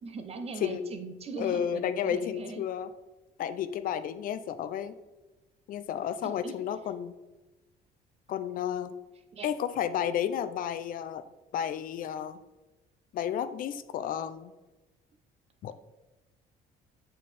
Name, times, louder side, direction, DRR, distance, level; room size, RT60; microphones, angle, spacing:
voice 1, 0.0-2.6 6.2-6.5 9.3-9.5, right 4 dB, 35° right, 7 dB, 0.7 m, -40 dB
voice 2, 1.4-2.9 3.4-4.9 5.7-7.1 8.3-8.9 9.4-11.2 11.5-12.4 13.1-14.5 15.6-15.7, left 9 dB, 55° left, 12 dB, 0.4 m, -32 dB
7.4 x 4.2 x 3.3 m, 1.1 s
cardioid pair, 110°, 17 cm